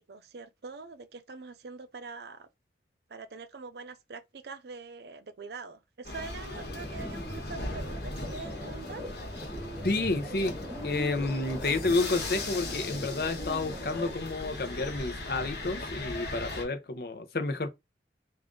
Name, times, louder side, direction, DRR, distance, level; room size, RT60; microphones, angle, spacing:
voice 1, 0.0-2.5 3.1-9.0, right 4 dB, 70° right, 0.5 m, -44 dB
sound 1, 6.0-16.6, left 2 dB, 75° left, 1.3 m, -38 dB
sound 2, 6.5-14.1, left 1 dB, ahead, 1.1 m, -41 dB
voice 2, 9.8-10.5 10.8-17.7, left 3 dB, 60° left, 0.7 m, -30 dB
3.7 x 2.5 x 3.7 m
head